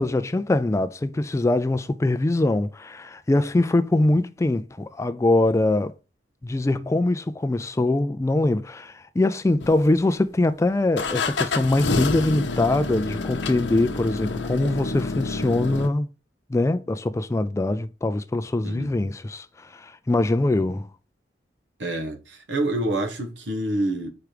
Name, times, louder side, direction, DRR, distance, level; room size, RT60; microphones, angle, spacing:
voice 1, 0.0-5.9 6.4-16.1 16.5-20.9, left 2 dB, 15° left, 0.3 m, -23 dB
sound 1, 9.6-10.3 11.0-15.9, left 3 dB, 80° left, 0.8 m, -28 dB
voice 2, 18.6-19.0 21.8-24.1, right 1 dB, 85° right, 1.4 m, -27 dB
4.8 x 4.5 x 5.0 m
head